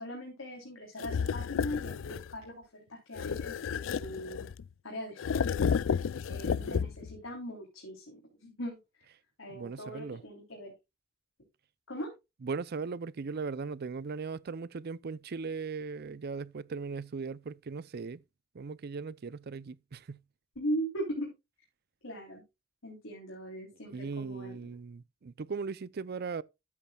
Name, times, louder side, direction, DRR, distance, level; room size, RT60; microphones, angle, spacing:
voice 1, 0.0-4.5 4.8-5.6 6.2-9.1 9.4-10.7 11.9-12.1 20.5-21.3 22.0-22.4 22.8-24.6, equal, 90° left, 3.4 m, -40 dB
sound 1, 1.0-2.3 3.1-4.7 5.2-7.2, left 6 dB, 70° left, 0.4 m, -32 dB
voice 2, 6.5-6.9 9.5-10.2 12.4-18.2 18.5-20.2 23.9-26.4, right 4 dB, 50° right, 0.5 m, -38 dB
13.0 x 8.6 x 2.3 m
head